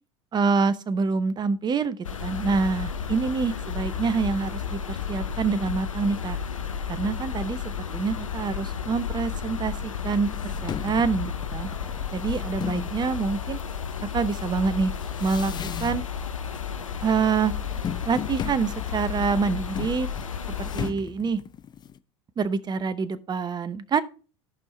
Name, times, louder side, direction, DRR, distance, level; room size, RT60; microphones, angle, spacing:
voice 1, 0.3-6.4 6.9-7.6 7.9-10.3 10.6-11.7 12.1-13.6 14.1-14.9 15.2-16.0 17.0-17.5 18.1-20.1 20.6-21.4 22.4-24.0, right 5 dB, 25° right, 0.9 m, -26 dB
sound 1, 2.0-20.9, left 7 dB, 90° left, 0.7 m, -32 dB
sound 2, 9.8-9.9 10.3-13.0 13.6-16.2 16.5-17.0 17.3-22.0, left 8 dB, 25° left, 0.6 m, -37 dB
14.5 x 5.5 x 3.2 m
hypercardioid pair, 80°, 16 cm